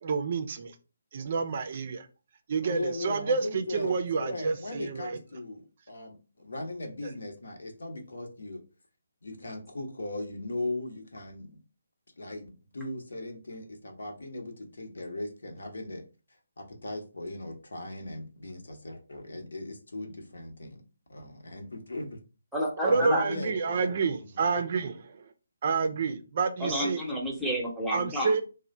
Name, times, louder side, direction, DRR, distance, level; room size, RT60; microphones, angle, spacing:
voice 1, 0.0-0.8 1.1-2.1 2.5-5.2 7.0-7.1 22.8-25.3 25.6-27.0 27.9-28.4, right 5 dB, 40° right, 7 dB, 0.4 m, -29 dB
voice 2, 2.6-8.6 9.2-11.6 12.2-16.0 16.6-20.8 21.1-22.2 22.8-24.4, left 2 dB, 65° left, 3 dB, 0.9 m, -38 dB
voice 3, 22.5-23.2 26.6-28.3, equal, ahead, -3 dB, 0.8 m, -30 dB
3.1 x 2.1 x 4.0 m, 0.33 s
figure-of-eight pair, 145°, 0 cm